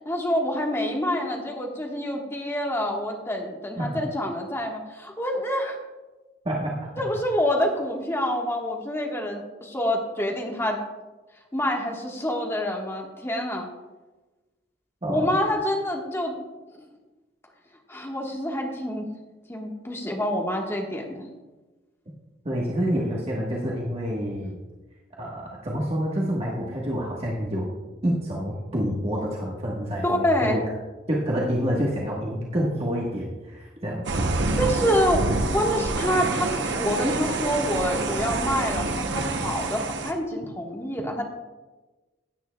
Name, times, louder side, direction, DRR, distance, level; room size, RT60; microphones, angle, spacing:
voice 1, 0.0-5.8 7.0-10.8 11.5-13.7 15.1-16.4 17.9-19.1 19.5-21.3 30.0-30.6 34.6-35.3 35.5-41.2, equal, 15° left, 0 dB, 1.4 m, -27 dB
voice 2, 6.4-6.9 15.0-15.4 22.4-24.5 25.2-27.7 28.0-30.6 31.1-34.2, equal, 35° right, -4 dB, 1.3 m, -28 dB
sound 1, 34.1-40.1, right 2 dB, 85° right, 0.9 m, -27 dB
16.5 x 9.1 x 2.3 m, 1.2 s
head